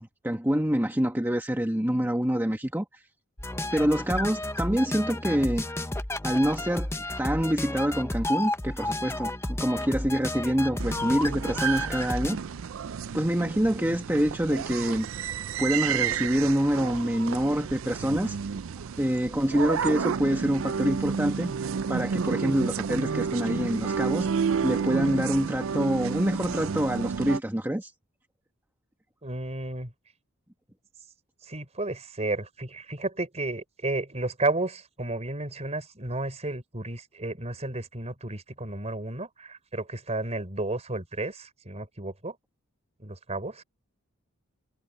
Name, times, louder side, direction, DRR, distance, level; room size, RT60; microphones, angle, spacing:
voice 1, 0.0-3.0 3.7-5.7 6.2-6.9 7.2-12.4 13.1-15.1 15.6-18.4 19.0-21.5 21.9-24.3 24.6-27.9, equal, 10° right, 1.5 m, -26 dB
sound 1, 3.4-12.4, left 1 dB, 10° left, 0.9 m, -32 dB
sound 2, 10.8-27.4, right 6 dB, 65° right, 0.4 m, -31 dB
voice 2, 29.2-29.9 31.4-42.4 43.0-43.6, right 2 dB, 30° right, 4.5 m, -32 dB
head